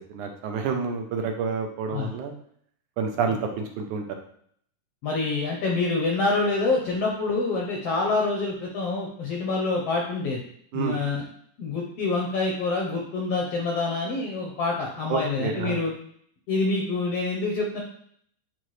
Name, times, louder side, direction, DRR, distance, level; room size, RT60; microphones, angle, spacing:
voice 1, 0.1-2.3 3.0-4.0 10.7-11.0 15.1-15.8, right 5 dB, 75° right, 3 dB, 2.1 m, -28 dB
voice 2, 5.0-10.4 10.7-11.2 11.6-15.9 16.5-17.8, left 3 dB, 70° left, -1 dB, 1.5 m, -26 dB
8.7 x 4.5 x 3.2 m, 0.64 s
omnidirectional pair, 3.8 m